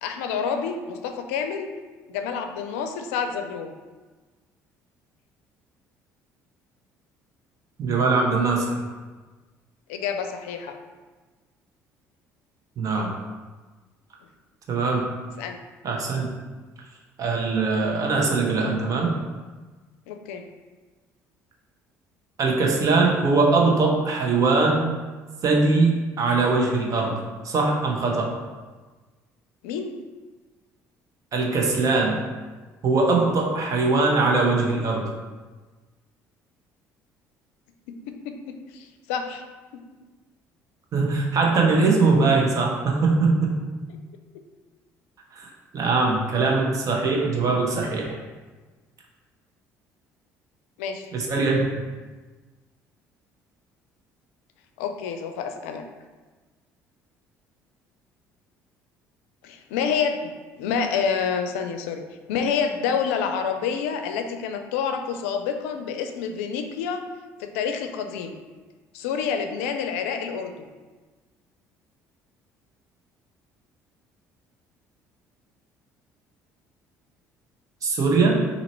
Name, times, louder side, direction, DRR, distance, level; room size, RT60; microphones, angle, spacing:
voice 1, 0.0-1.7 2.1-3.7 9.9-10.8 15.4-15.6 20.1-20.4 29.6-29.9 38.1-38.3 38.7-39.4 39.7-39.8 50.8-51.1 54.8-55.9 59.4-62.0 62.3-67.0 67.4-68.4 68.9-70.7, left 6 dB, 85° left, 6 dB, 0.4 m, -28 dB
voice 2, 7.8-8.7 12.8-13.1 14.7-15.1 15.8-16.3 17.2-19.2 22.4-24.9 25.4-27.2 27.4-28.3 31.3-32.2 32.8-35.1 40.9-43.7 45.3-45.5 45.7-48.2 51.1-51.7 77.8-78.4, right 3 dB, 50° right, -1 dB, 1.1 m, -21 dB
4.1 x 2.8 x 4.4 m, 1.3 s
hypercardioid pair, 65°, 7 cm